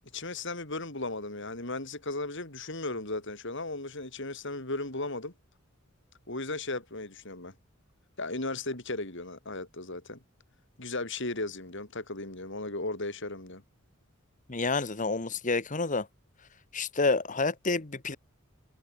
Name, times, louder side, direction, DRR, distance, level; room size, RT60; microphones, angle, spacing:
voice 1, 0.1-5.3 6.3-7.5 8.2-10.2 10.8-13.6, left 2 dB, 60° left, 5.3 m, -36 dB
voice 2, 14.5-16.1 16.7-18.2, left 3 dB, 40° left, 1.4 m, -29 dB
head